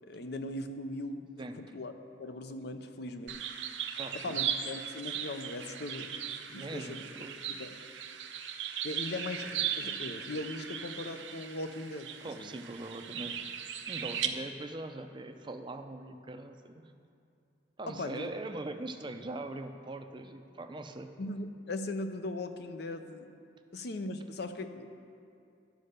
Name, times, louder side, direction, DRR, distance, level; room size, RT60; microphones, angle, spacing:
voice 1, 0.0-1.2 1.6-1.9 2.2-3.4 4.2-6.1 6.5-7.0 7.5-7.7 8.8-12.6 17.9-18.3 21.2-23.3 23.7-24.9, left 2 dB, 60° left, 8 dB, 0.6 m, -39 dB
sound 1, 3.3-14.3, right 9 dB, 85° right, 0.7 m, -38 dB
voice 2, 4.0-4.5 6.5-7.4 12.2-13.4 13.9-16.9 17.8-21.1, right 2 dB, 25° right, 6 dB, 0.5 m, -41 dB
11.5 x 5.5 x 6.6 m, 2.5 s
head